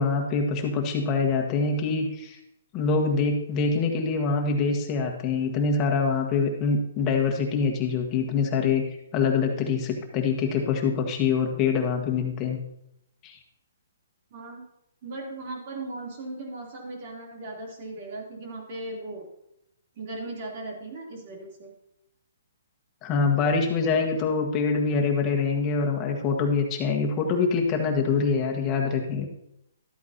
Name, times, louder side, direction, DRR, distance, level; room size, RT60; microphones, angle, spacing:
voice 1, 0.0-2.4 2.7-12.6 13.2-13.4 23.0-29.3, left 5 dB, 25° left, 2 dB, 1.5 m, -25 dB
voice 2, 14.3-14.6 15.0-19.3 20.0-21.7, right 2 dB, 45° right, -1 dB, 3.1 m, -37 dB
12.5 x 8.6 x 2.8 m, 0.79 s
hypercardioid pair, 155°, 0 cm